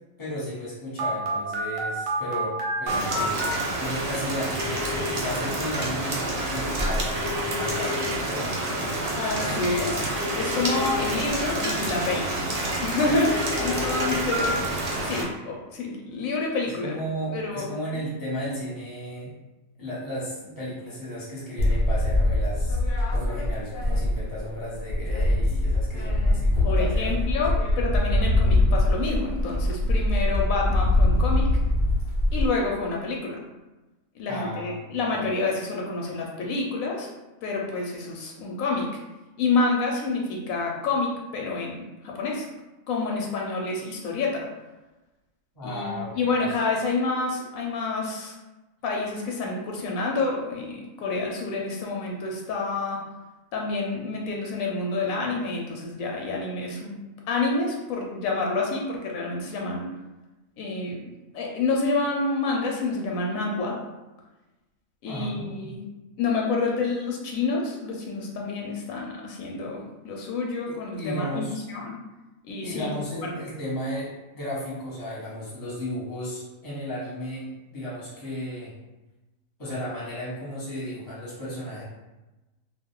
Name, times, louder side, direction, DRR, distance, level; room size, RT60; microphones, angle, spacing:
voice 1, 0.2-3.4 3.7-9.1 9.3-9.6 13.6-14.7 16.8-19.4 19.8-27.1 34.3-35.3 45.5-46.6 65.1-65.7 70.7-71.6 72.6-78.7 79.6-81.8, equal, 15° left, -8 dB, 0.9 m, -34 dB
Telephone, 1.0-3.5 4.5-5.2 7.2-8.2 10.2-11.2 13.2-14.5, left 1 dB, 55° right, 0.7 m, -30 dB
Rain, 2.9-15.2, right 1 dB, 85° right, 0.3 m, -29 dB
voice 2, 9.2-12.3 12.8-14.5 15.0-17.0 17.3-17.7 17.9-18.0 26.6-31.5 32.3-33.4 34.2-37.1 37.4-38.9 39.4-42.5 42.9-44.5 45.6-48.3 48.8-53.0 53.5-57.0 57.3-59.9 60.6-61.0 61.3-63.8 65.0-65.8 66.2-72.0 72.5-72.9 73.2-73.3, left 3 dB, 80° left, -1 dB, 1.0 m, -28 dB
sound 1, 21.6-24.4 24.7-32.5, left 1 dB, 60° left, 0.6 m, -23 dB
2.4 x 2.3 x 3.6 m, 1.1 s
omnidirectional pair, 1.4 m